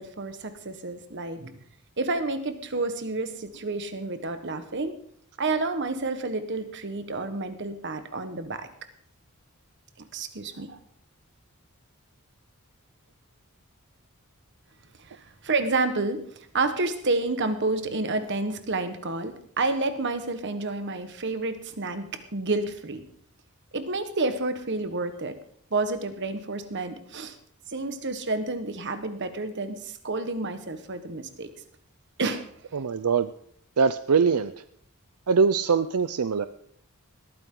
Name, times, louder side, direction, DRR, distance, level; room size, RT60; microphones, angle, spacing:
voice 1, 0.0-1.6 2.0-5.0 5.4-8.7 10.1-10.8 15.0-23.0 23.7-25.4 25.7-27.3 27.7-31.5 32.2-32.4, right 3 dB, 50° right, 9 dB, 1.4 m, -29 dB
voice 2, 32.7-33.3 33.8-34.5 35.3-36.5, right 5 dB, 85° right, 13 dB, 0.6 m, -22 dB
19.5 x 14.0 x 3.9 m, 0.63 s
head